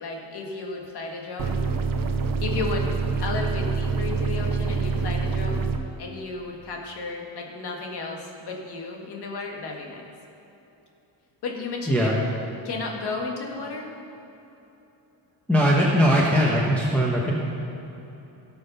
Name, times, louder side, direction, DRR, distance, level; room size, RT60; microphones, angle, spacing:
voice 1, 0.0-1.6 2.4-2.9 3.2-5.7 6.0-10.1 11.4-12.1 12.6-13.9, left 3 dB, 55° left, 0 dB, 1.8 m, -33 dB
sound 1, 1.4-5.8, right 4 dB, 45° right, 0.8 m, -26 dB
voice 2, 15.5-17.4, equal, 5° left, -6 dB, 1.1 m, -20 dB
17.0 x 5.7 x 5.5 m, 3.0 s
cardioid pair, 145°, 46 cm